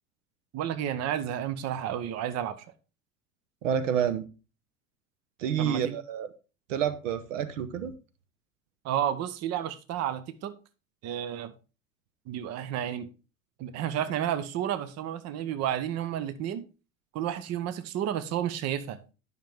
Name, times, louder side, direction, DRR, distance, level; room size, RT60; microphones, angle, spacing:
voice 1, 0.5-2.6 5.6-6.0 8.8-10.5 11.0-11.5 12.3-13.1 13.6-16.6 17.1-19.0, right 10 dB, 40° right, 13 dB, 0.9 m, -31 dB
voice 2, 3.6-4.2 5.4-6.3 6.7-7.9, right 8 dB, 70° right, 13 dB, 1.0 m, -28 dB
10.5 x 6.0 x 3.5 m, 0.32 s
hypercardioid pair, 80°, 39 cm